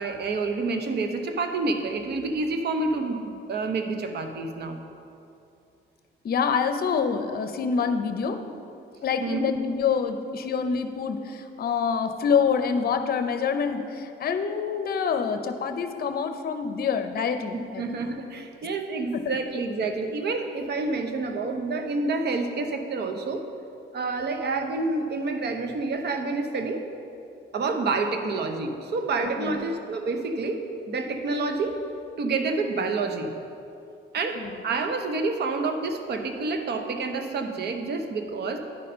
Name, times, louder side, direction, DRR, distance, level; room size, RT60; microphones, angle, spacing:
voice 1, 0.0-4.8 9.2-9.4 17.8-23.4 23.9-26.8 27.5-30.6 30.9-31.8 32.2-33.3 34.1-38.6, right 3 dB, 55° right, 5 dB, 0.8 m, -28 dB
voice 2, 6.2-8.4 9.0-17.8 19.1-19.4 29.4-29.7 34.4-34.6, left 6 dB, 50° left, 8 dB, 0.7 m, -26 dB
9.9 x 4.2 x 5.5 m, 2.6 s
cardioid pair, 90°, 20 cm